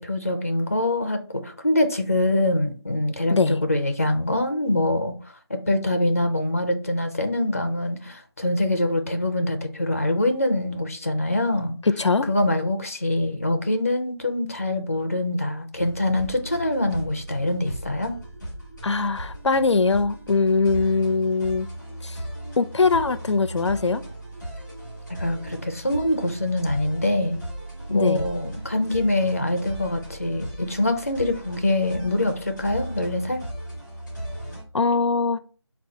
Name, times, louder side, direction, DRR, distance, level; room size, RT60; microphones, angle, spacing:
voice 1, 0.0-5.1 5.5-11.7 12.3-18.2 25.2-27.4 27.9-33.4, left 1 dB, 30° left, 0.5 m, -24 dB
voice 2, 3.3-3.6 11.9-12.3 18.8-21.7 22.0-22.2 22.6-24.0 27.9-28.3 34.7-35.4, left 4 dB, 85° left, 0.4 m, -21 dB
sound 1, 15.8-34.6, right 1 dB, ahead, 0.7 m, -36 dB
3.6 x 2.3 x 4.2 m
figure-of-eight pair, 175°, 14 cm